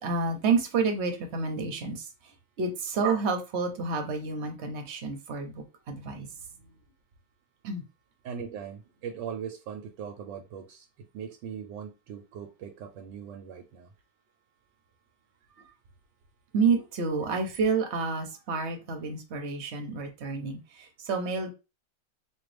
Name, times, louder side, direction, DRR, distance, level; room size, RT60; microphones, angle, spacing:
voice 1, 0.0-2.1 2.6-6.3 7.6-7.8 16.5-21.5, right 4 dB, 50° right, 0.9 m, -29 dB
voice 2, 8.2-13.9, right 7 dB, 85° right, 1.3 m, -40 dB
4.4 x 2.5 x 3.3 m
omnidirectional pair, 2.0 m